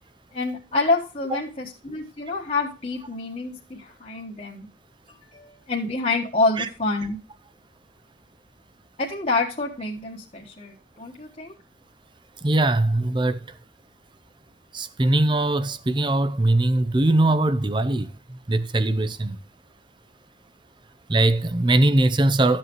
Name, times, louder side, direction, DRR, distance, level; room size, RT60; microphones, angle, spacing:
voice 1, 0.3-4.7 5.3-7.2 9.0-11.5, left 3 dB, 35° left, 1.3 m, -27 dB
voice 2, 12.4-13.4 14.7-19.4 21.1-22.6, right 2 dB, 25° right, 0.6 m, -21 dB
12.5 x 7.5 x 3.0 m
head